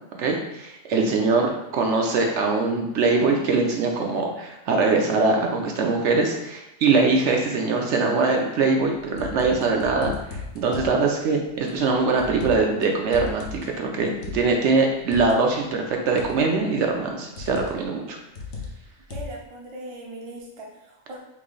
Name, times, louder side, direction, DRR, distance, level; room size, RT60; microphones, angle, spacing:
voice 1, 0.1-18.2, right 3 dB, 70° right, 2 dB, 0.9 m, -22 dB
sound 1, 8.8-11.0 11.7-12.8 13.1-15.4 16.2-16.6 17.4-17.9 18.3-19.5, left 4 dB, 65° left, 0.9 m, -36 dB
voice 2, 19.1-21.2, right 2 dB, 40° right, -2 dB, 0.4 m, -39 dB
3.1 x 2.6 x 3.8 m, 0.89 s
omnidirectional pair, 1.3 m